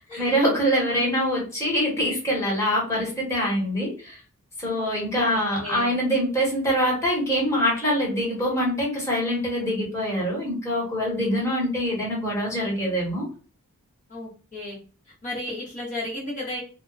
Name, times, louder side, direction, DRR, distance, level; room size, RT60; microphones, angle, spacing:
voice 1, 0.2-4.2 4.6-13.2, equal, 15° left, -4 dB, 1.2 m, -24 dB
voice 2, 0.8-1.2 4.7-5.9 14.1-14.8 15.2-16.6, left 1 dB, 35° left, -6 dB, 1.0 m, -35 dB
2.2 x 2.2 x 3.9 m, 0.37 s
head